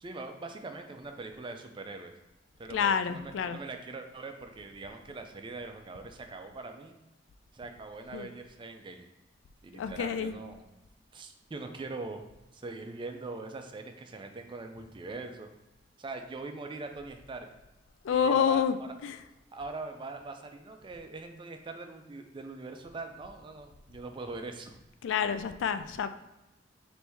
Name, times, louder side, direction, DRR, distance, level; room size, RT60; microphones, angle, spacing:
voice 1, 0.0-2.1 2.6-6.9 7.5-9.1 9.6-10.7 11.1-12.2 12.5-15.5 16.0-17.5 18.1-18.6 19.5-24.8, right 3 dB, 25° right, 5 dB, 0.4 m, -42 dB
voice 2, 2.7-3.6 8.1-8.3 9.7-10.4 18.0-18.8 19.0-19.2 25.0-26.1, left 7 dB, 75° left, 10 dB, 0.3 m, -28 dB
4.4 x 2.7 x 3.4 m, 0.99 s
head